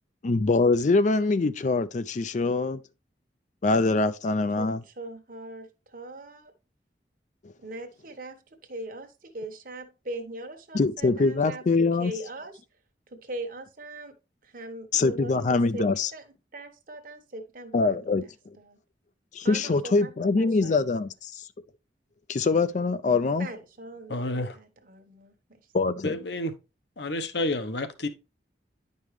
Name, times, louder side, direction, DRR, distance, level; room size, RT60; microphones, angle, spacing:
voice 1, 0.2-2.8 3.6-4.8 10.7-12.1 14.9-16.1 17.7-18.2 19.3-21.4 22.3-23.5 25.7-26.2, left 3 dB, 45° left, 0.4 m, -24 dB
voice 2, 4.5-6.5 7.6-11.6 12.0-12.6 13.1-14.1 14.4-18.8 19.4-20.1 20.4-20.9 23.4-25.6, right 2 dB, 50° right, 1.2 m, -41 dB
voice 3, 24.1-24.6 26.0-26.5 27.0-28.1, left 1 dB, 70° left, 1.0 m, -29 dB
10.5 x 5.4 x 3.2 m
head